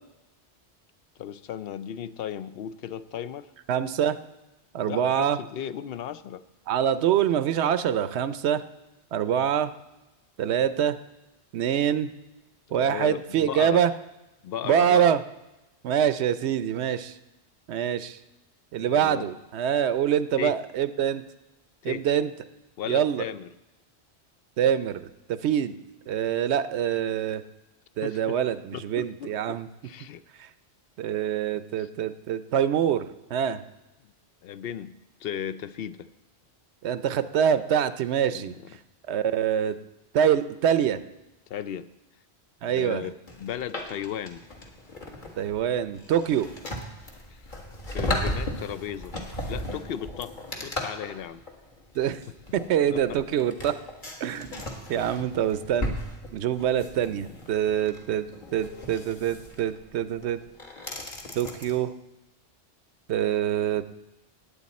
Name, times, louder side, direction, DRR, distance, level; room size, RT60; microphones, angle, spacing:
voice 1, 1.2-3.5 4.9-6.4 12.7-13.8 14.4-15.1 18.8-19.3 20.4-20.6 21.8-22.0 22.8-23.5 28.0-28.4 28.7-30.2 31.8-31.9 34.0-34.1 34.4-35.0 35.2-36.1 38.3-38.8 41.5-41.9 42.6-44.4 47.3-47.4 47.9-49.1 49.5-50.3 50.6-51.4 52.9-53.2, left 9 dB, 65° left, 14 dB, 0.7 m, -36 dB
voice 2, 3.7-4.2 4.7-5.4 6.7-8.6 9.1-9.7 10.4-11.0 11.5-12.1 12.7-13.9 14.6-15.2 15.8-17.2 17.7-18.2 18.7-21.2 21.8-22.3 22.9-23.2 24.6-25.0 25.3-25.8 26.1-27.4 28.0-29.7 30.4-30.5 31.0-33.1 33.3-33.6 36.8-38.5 39.1-39.8 40.1-41.0 42.6-43.1 45.4-46.5 52.0-52.2 52.5-53.7 54.2-54.6 54.9-55.9 56.3-58.3 58.5-60.4 61.4-61.9 63.1-63.8, right 9 dB, 80° right, 13 dB, 0.9 m, -25 dB
sound 1, 43.3-61.7, left 1 dB, 45° left, 1.8 m, -36 dB
sound 2, 52.9-53.8 55.0-55.1 58.5-58.8, left 6 dB, 85° left, 2.0 m, -48 dB
18.5 x 8.5 x 4.2 m, 0.99 s
omnidirectional pair, 1.1 m